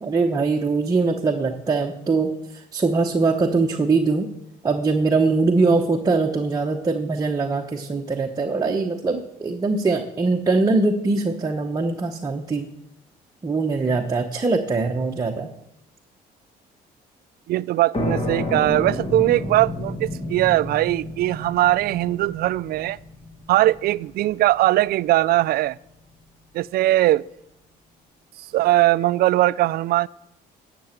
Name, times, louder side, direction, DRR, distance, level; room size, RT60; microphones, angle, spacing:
voice 1, 0.0-4.3 4.6-12.7 13.4-15.5, right 3 dB, 20° right, 1.0 m, -22 dB
voice 2, 17.5-23.0 23.5-25.8 26.5-27.2 28.4-30.1, right 16 dB, 65° right, 0.4 m, -20 dB
sound 1, 17.9-25.3, left 1 dB, 35° left, 2.2 m, -31 dB
10.5 x 7.0 x 9.0 m
cardioid pair, 110°, 17 cm